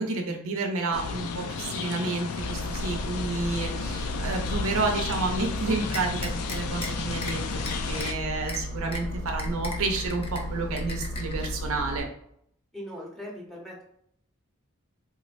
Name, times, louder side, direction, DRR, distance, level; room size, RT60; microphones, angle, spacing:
voice 1, 0.0-12.1, right 3 dB, 65° right, 3 dB, 0.6 m, -30 dB
sound 1, 0.9-8.1, left 5 dB, 85° left, 0.4 m, -33 dB
Engine, 2.4-12.0, equal, 50° left, 1.3 m, -34 dB
sound 2, 5.9-6.9 7.2-7.3 7.7-8.1 8.5-8.6 8.9-9.0 9.4-10.4 10.8-11.5, left 3 dB, 25° left, 0.4 m, -36 dB
voice 2, 12.7-13.8, equal, ahead, -3 dB, 0.8 m, -40 dB
3.7 x 3.0 x 2.5 m, 0.69 s
head